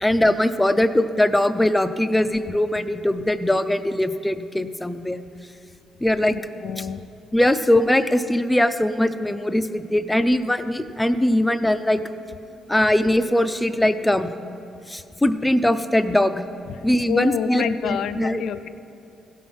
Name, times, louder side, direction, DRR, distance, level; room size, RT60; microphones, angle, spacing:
voice 1, 0.0-5.2 6.0-6.4 7.3-12.0 12.7-14.3 14.9-16.4 16.8-18.4, left 1 dB, 10° left, 10 dB, 0.5 m, -21 dB
voice 2, 6.3-7.1 16.7-18.7, left 8 dB, 75° left, 12 dB, 0.4 m, -28 dB
16.0 x 5.6 x 6.0 m, 2.6 s
cardioid pair, 90°, 0 cm